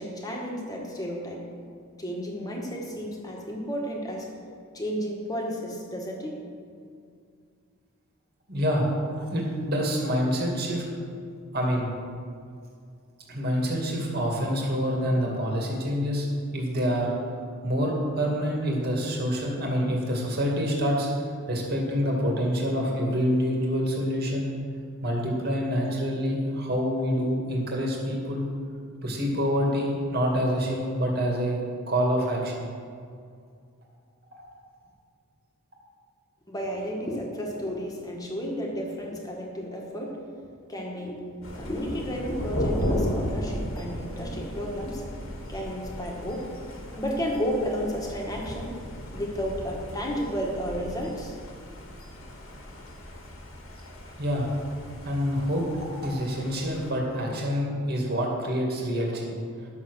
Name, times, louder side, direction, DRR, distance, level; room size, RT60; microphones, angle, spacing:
voice 1, 0.0-1.4 2.0-4.3 4.7-6.3 36.5-40.3 40.7-41.3 41.5-45.0 45.5-46.4 47.0-48.7 49.1-51.4, equal, 15° left, -1 dB, 1.7 m, -32 dB
voice 2, 8.5-10.8 11.5-11.9 13.3-16.3 16.5-17.1 17.6-21.1 21.5-24.5 25.0-28.5 29.0-31.6 31.9-32.7 54.2-54.5 55.0-59.4, equal, 45° right, -2 dB, 2.3 m, -26 dB
Thunder, 41.4-56.9, equal, 65° left, 1.9 m, -35 dB
11.5 x 7.1 x 6.4 m, 2.3 s
head